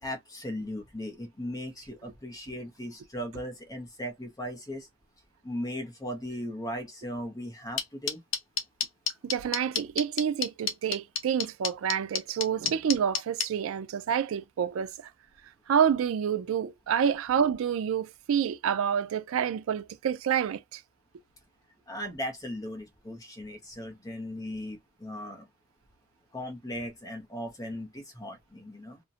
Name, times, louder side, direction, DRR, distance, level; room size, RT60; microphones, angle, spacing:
voice 1, 0.0-4.9 5.4-8.2 21.9-25.5 26.3-29.0, equal, 15° left, 0.5 m, -37 dB
sound 1, 7.8-13.5, left 7 dB, 60° left, 0.5 m, -28 dB
voice 2, 9.2-14.9 15.7-20.8, right 8 dB, 75° right, 0.3 m, -28 dB
2.5 x 2.1 x 2.6 m
head